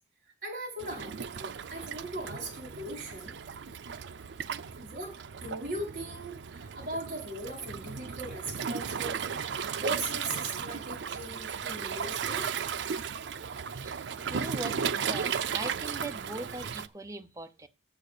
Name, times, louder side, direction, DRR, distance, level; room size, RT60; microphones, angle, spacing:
voice 1, 0.4-3.3 4.2-4.3 4.8-9.4 9.8-12.5, right 1 dB, 45° right, -2 dB, 4.7 m, -39 dB
Waves surf, 0.8-16.9, right 7 dB, 80° right, 0.5 m, -35 dB
voice 2, 14.3-17.7, right 2 dB, 20° right, 8 dB, 0.6 m, -40 dB
7.6 x 6.8 x 6.6 m, 0.31 s
head